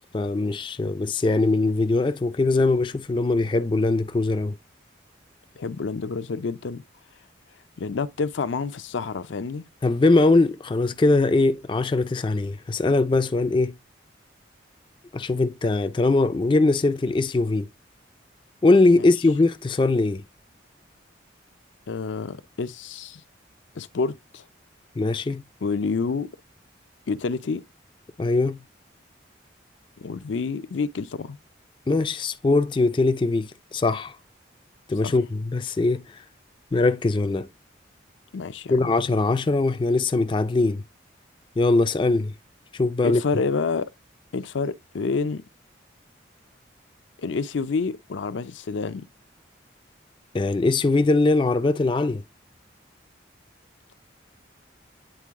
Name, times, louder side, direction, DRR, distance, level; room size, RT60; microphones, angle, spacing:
voice 1, 0.1-4.6 9.8-13.7 15.1-17.7 18.6-20.2 25.0-25.4 28.2-28.6 31.9-34.2 34.9-36.2 36.7-37.5 38.7-40.8 41.6-42.3 42.7-43.2 50.3-52.2, left 3 dB, 25° left, 0.3 m, -21 dB
voice 2, 5.6-6.8 7.8-9.7 19.0-19.1 21.9-23.2 23.8-24.4 25.6-26.3 27.1-27.6 30.0-31.4 35.0-35.1 38.3-38.9 43.0-43.9 44.3-45.4 47.2-49.1, left 4 dB, 80° left, 0.5 m, -28 dB
9.2 x 3.8 x 3.6 m
head